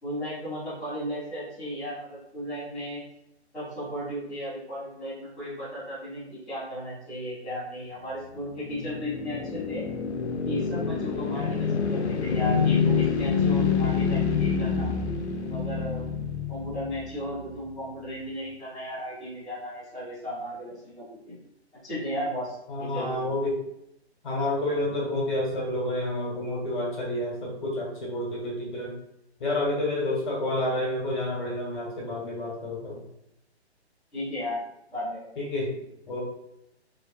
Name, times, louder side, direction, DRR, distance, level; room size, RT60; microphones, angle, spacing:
voice 1, 0.0-3.0 3.5-9.8 10.4-14.9 15.4-16.0 16.5-21.4 21.8-23.3 34.1-34.6 34.9-35.3, equal, ahead, -21 dB, 0.5 m, -35 dB
sound 1, 8.3-17.5, left 6 dB, 80° left, 0.5 m, -27 dB
voice 2, 22.7-23.5 24.2-29.0 29.4-33.0 35.4-35.7 36.1-36.2, left 1 dB, 50° left, -3 dB, 1.0 m, -29 dB
2.7 x 2.2 x 2.3 m, 0.80 s
hypercardioid pair, 150°, 33 cm